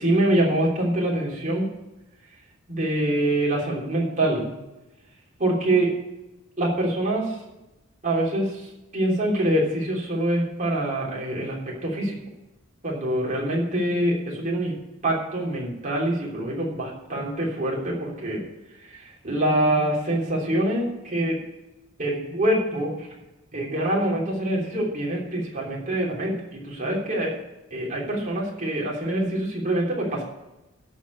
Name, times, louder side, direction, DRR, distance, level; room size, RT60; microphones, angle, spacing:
voice 1, 0.0-1.7 2.7-4.5 5.4-5.9 6.6-7.3 8.0-8.7 8.9-12.2 12.8-14.7 15.0-18.4 18.9-21.4 22.0-23.1 23.5-27.3 27.7-30.2, right 1 dB, 40° right, -3 dB, 3.3 m, -25 dB
13.5 x 5.5 x 8.3 m, 0.99 s
head